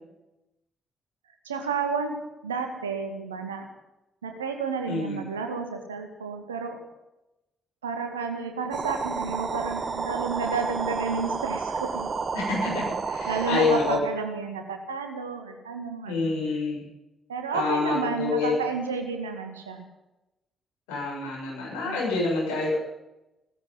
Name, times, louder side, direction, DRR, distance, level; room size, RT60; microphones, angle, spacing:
voice 1, 1.4-3.7 4.2-6.8 7.8-12.1 12.7-12.8 13.3-16.4 17.3-19.8 21.8-22.0, right 5 dB, 80° right, 5 dB, 2.0 m, -31 dB
voice 2, 4.9-5.2 12.3-14.0 16.1-16.8 17.5-18.6 20.9-22.8, left 4 dB, 70° left, -3 dB, 7.3 m, -27 dB
sound 1, 8.7-14.0, right 4 dB, 40° right, 1.4 m, -31 dB
16.5 x 14.5 x 5.6 m, 0.93 s
figure-of-eight pair, 40°, 0 cm